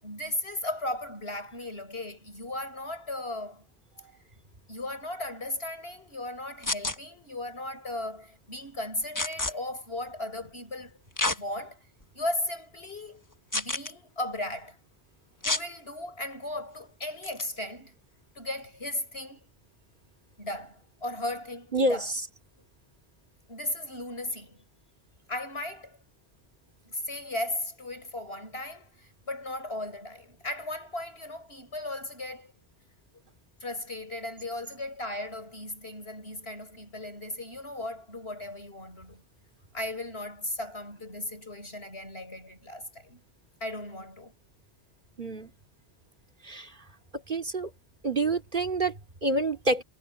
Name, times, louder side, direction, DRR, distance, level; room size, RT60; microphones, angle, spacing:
voice 1, 0.0-3.7 4.7-11.0 11.3-11.8 12.1-13.2 13.5-14.8 15.4-18.0 18.4-19.5 20.4-22.1 23.5-24.6 25.3-26.0 26.9-32.5 33.6-39.2 39.7-43.2 43.6-44.3, left 1 dB, 85° left, 7.0 m, -36 dB
sound 1, 6.6-7.0 9.2-9.5 11.2-11.4 12.0-12.1 13.5-13.9 15.4-15.7 17.2-17.4, left 2 dB, 20° left, 1.0 m, -28 dB
voice 2, 21.7-22.3 45.2-45.5 46.4-46.8 47.1-47.7 48.0-49.8, right 2 dB, 50° right, 2.9 m, -28 dB
omnidirectional pair, 1.0 m